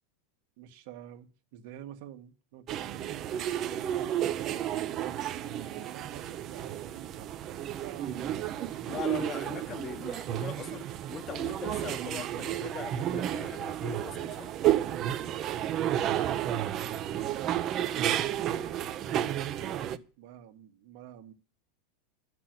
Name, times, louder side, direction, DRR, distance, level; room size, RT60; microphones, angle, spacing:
voice 1, 0.6-7.3 7.6-8.9 15.7-21.3, right 11 dB, 60° right, 1.8 m, -50 dB
sound 1, 2.7-20.0, right 11 dB, 35° right, 0.8 m, -32 dB
voice 2, 8.9-14.6, left 8 dB, 25° left, 1.2 m, -41 dB
12.0 x 6.1 x 9.4 m
supercardioid pair, 155°, 0 cm